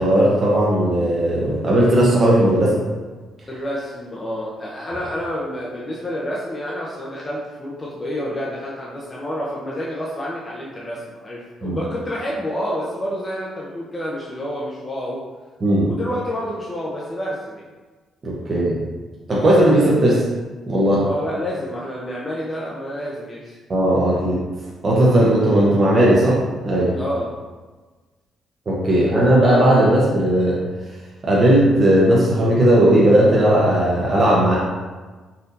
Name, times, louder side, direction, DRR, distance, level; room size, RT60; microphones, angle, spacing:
voice 1, 0.0-2.8 11.6-11.8 15.6-15.9 18.2-18.8 19.3-20.3 20.7-21.1 23.7-24.4 24.8-27.0 28.7-30.6 31.2-34.6, right 1 dB, 40° right, -5 dB, 0.8 m, -16 dB
voice 2, 3.5-15.2 15.9-17.7 21.0-23.6 26.9-27.4, equal, 25° left, -5 dB, 0.6 m, -29 dB
4.1 x 2.7 x 2.6 m, 1.3 s
cardioid pair, 90°, 0 cm